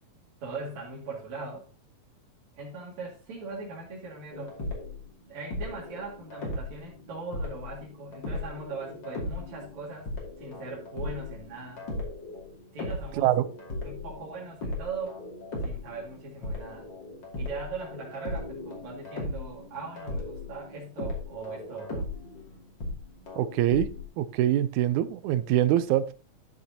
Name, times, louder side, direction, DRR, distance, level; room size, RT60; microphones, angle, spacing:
voice 1, 0.4-1.7 2.5-4.6 5.3-10.1 10.4-11.9 12.7-13.3 13.8-15.2 15.6-16.9 17.4-22.1, right 3 dB, 65° right, 3.6 m, -40 dB
sound 1, 4.3-5.0 5.5-24.0, left 2 dB, 40° left, 2.9 m, -37 dB
voice 2, 23.4-23.9 24.2-26.1, right 12 dB, 80° right, 2.0 m, -24 dB
13.0 x 6.6 x 2.8 m
omnidirectional pair, 3.5 m